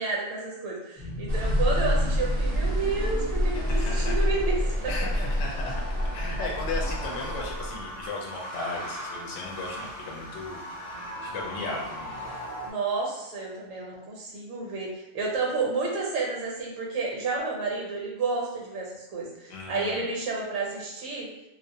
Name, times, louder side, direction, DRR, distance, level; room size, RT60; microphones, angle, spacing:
voice 1, 0.0-4.9 12.6-21.3, right 3 dB, 75° right, -2 dB, 1.0 m, -31 dB
sound 1, 0.9-12.7, left 1 dB, 30° left, 0.5 m, -39 dB
sound 2, 1.3-8.0, equal, 55° right, 0.7 m, -27 dB
voice 2, 3.7-4.3 4.9-5.8 6.1-12.3 19.5-20.1, left 2 dB, 70° left, -1 dB, 0.8 m, -36 dB
2.4 x 2.0 x 2.6 m, 0.94 s
omnidirectional pair, 1.4 m